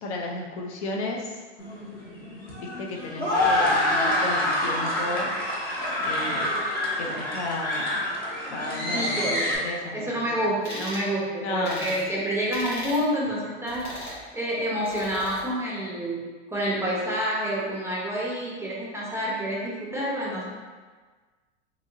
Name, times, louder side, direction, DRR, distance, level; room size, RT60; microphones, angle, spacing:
voice 1, 0.0-1.4 2.6-5.3 6.0-6.6 7.0-8.1 8.5-10.5 11.4-12.1 12.5-12.6, left 2 dB, 70° left, -1 dB, 0.7 m, -33 dB
sound 1, 1.6-9.6, left 1 dB, 25° left, 0.8 m, -26 dB
voice 2, 8.9-9.4 9.9-13.8 14.3-16.2 16.5-20.4, equal, 5° right, -5 dB, 0.5 m, -28 dB
sound 2, 10.6-11.0 11.6-12.0 12.5-13.0 13.7-14.2 14.9-15.4, left 1 dB, 85° left, 1.3 m, -37 dB
2.9 x 2.7 x 2.6 m, 1.4 s
hypercardioid pair, 100°, 35 cm